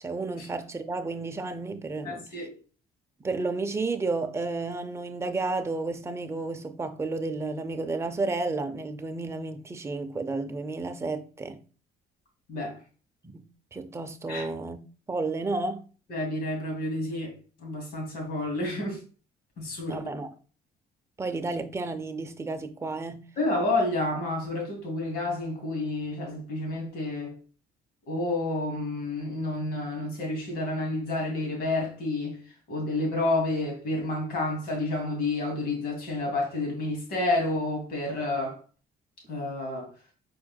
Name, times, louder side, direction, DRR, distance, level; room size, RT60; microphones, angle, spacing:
voice 1, 0.0-2.5 3.2-11.6 13.2-15.8 19.9-20.3 21.2-23.3, right 3 dB, 15° right, 0.5 m, -32 dB
voice 2, 2.0-2.5 12.5-12.8 14.3-14.5 16.1-17.3 17.6-19.0 19.6-20.1 23.4-27.3 28.1-32.4 32.7-38.6 39.3-39.9, left 2 dB, 65° left, 2.5 m, -29 dB
5.0 x 4.3 x 2.3 m
cardioid pair, 110°, 17 cm